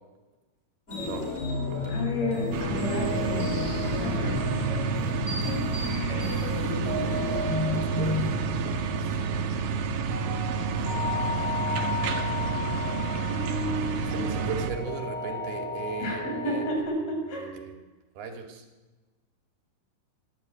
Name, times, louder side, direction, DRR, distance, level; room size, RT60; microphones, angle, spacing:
sound 1, 0.9-8.3, left 2 dB, 15° left, 5.4 m, -32 dB
voice 1, 0.9-1.3 1.7-2.0 7.7-9.7 10.7-11.0 14.1-17.8 18.2-18.7, right 5 dB, 90° right, 4 dB, 4.4 m, -38 dB
voice 2, 1.9-3.5 3.9-4.4 4.7-4.8 13.3-14.4 16.0-17.4, left 1 dB, 70° left, 1 dB, 7.6 m, -32 dB
sound 2, 2.4-16.8, left 2 dB, 20° right, 3.5 m, -35 dB
sound 3, 2.5-14.7, right 5 dB, 65° right, 2.9 m, -30 dB
23.5 x 14.0 x 9.6 m, 1.2 s
omnidirectional pair, 4.4 m